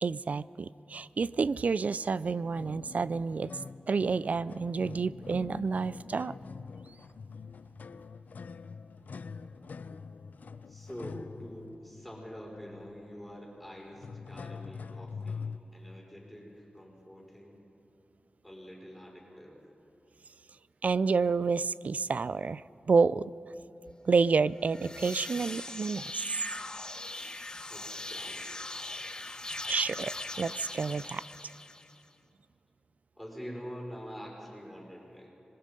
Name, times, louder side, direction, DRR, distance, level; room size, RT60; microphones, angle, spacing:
voice 1, 0.0-3.5 3.9-6.3 20.8-23.3 24.1-26.4 29.7-31.2, right 4 dB, 60° right, 18 dB, 0.4 m, -29 dB
sound 1, 2.5-15.6, left 5 dB, 75° left, 0.6 m, -44 dB
voice 2, 10.7-17.6 18.4-19.6 27.7-29.1 33.2-35.3, equal, ahead, -3 dB, 5.3 m, -46 dB
sound 2, 24.6-32.0, left 2 dB, 30° left, 1.4 m, -40 dB
26.0 x 20.5 x 5.3 m, 3.0 s
wide cardioid pair, 90°, 3 cm